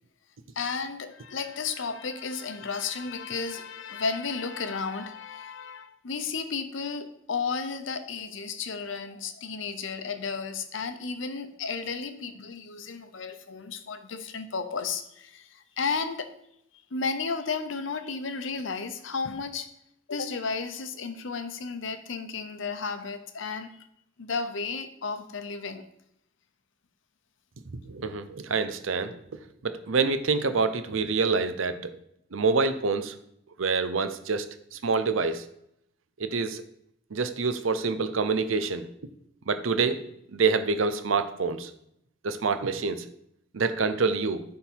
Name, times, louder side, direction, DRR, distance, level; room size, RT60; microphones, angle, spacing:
voice 1, 0.6-16.3 16.9-19.7 20.1-23.9 24.2-25.9, left 5 dB, 75° left, 9 dB, 0.7 m, -33 dB
voice 2, 27.9-29.1 29.6-31.9 32.3-33.1 33.6-35.4 36.2-36.6 37.1-38.9 39.5-40.0 40.3-41.7 42.2-43.1 43.5-44.4, right 4 dB, 90° right, 10 dB, 0.7 m, -26 dB
11.0 x 3.7 x 4.6 m, 0.76 s
head